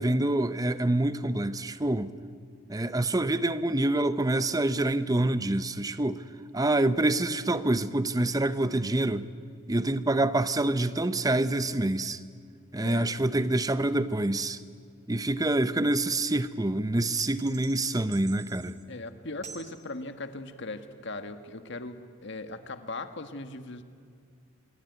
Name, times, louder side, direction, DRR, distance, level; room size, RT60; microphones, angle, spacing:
voice 1, 0.0-2.1 2.7-6.2 6.5-9.3 9.7-12.2 12.7-14.6 15.1-18.8, right 2 dB, 20° right, 0.8 m, -26 dB
sound 1, 17.2-18.8 19.4-19.8, right 6 dB, 35° right, 2.1 m, -46 dB
voice 2, 18.9-23.8, left 2 dB, 60° left, 1.7 m, -39 dB
25.5 x 22.5 x 9.5 m
head